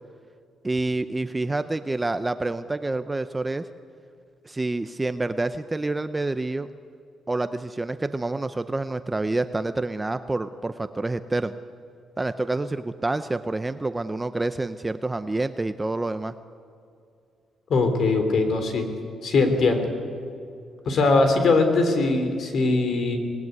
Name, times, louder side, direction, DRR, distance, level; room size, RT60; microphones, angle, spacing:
voice 1, 0.6-3.7 4.4-6.7 7.3-11.6 12.2-16.3, right 2 dB, 10° right, 11 dB, 0.6 m, -28 dB
voice 2, 17.7-18.8 19.2-19.9 20.9-23.2, left 3 dB, 50° left, 7 dB, 3.5 m, -21 dB
26.0 x 19.5 x 9.5 m, 2.4 s
cardioid pair, 170°, 0 cm